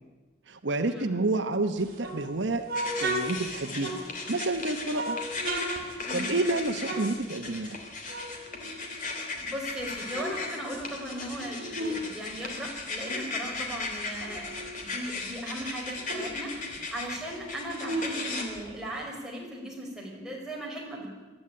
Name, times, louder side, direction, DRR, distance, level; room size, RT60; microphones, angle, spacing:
voice 1, 0.5-2.6 3.0-3.9 4.3-5.2 5.8-7.8, right 2 dB, 70° right, 7 dB, 1.1 m, -29 dB
sound 1, 1.8-4.4 4.9-7.8 8.0-9.4 9.8-12.1 12.3-14.9 15.3-15.4 15.6-19.0, right 1 dB, 50° right, 3.5 m, -36 dB
sound 2, 2.7-18.4, left 3 dB, 45° left, 3.1 m, -37 dB
voice 2, 9.4-16.5 16.9-21.1, equal, 5° right, -3 dB, 5.1 m, -37 dB
22.5 x 12.5 x 9.7 m, 1.2 s
head